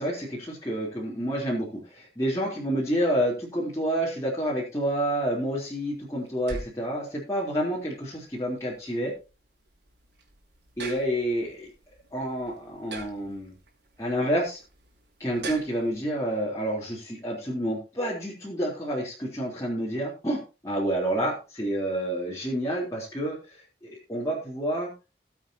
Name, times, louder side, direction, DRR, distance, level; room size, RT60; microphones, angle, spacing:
voice 1, 0.0-9.1 10.8-11.7 12.1-13.5 14.0-14.6 15.2-23.4 23.8-24.9, right 1 dB, 15° left, -6 dB, 3.9 m, -29 dB
sound 1, 5.3-16.0, right 3 dB, 75° right, 4.5 m, -44 dB
19.0 x 8.4 x 2.9 m, 0.31 s
head